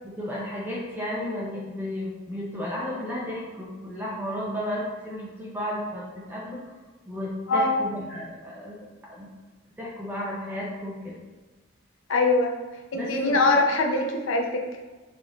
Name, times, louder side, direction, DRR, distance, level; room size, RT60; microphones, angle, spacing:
voice 1, 0.0-6.6 7.1-8.8 9.1-9.3 9.8-11.2 12.9-13.4, left 1 dB, 10° right, -5 dB, 0.5 m, -33 dB
voice 2, 12.1-12.5 12.9-14.6, left 2 dB, 75° left, 2 dB, 0.5 m, -22 dB
3.4 x 2.5 x 3.7 m, 1.3 s
head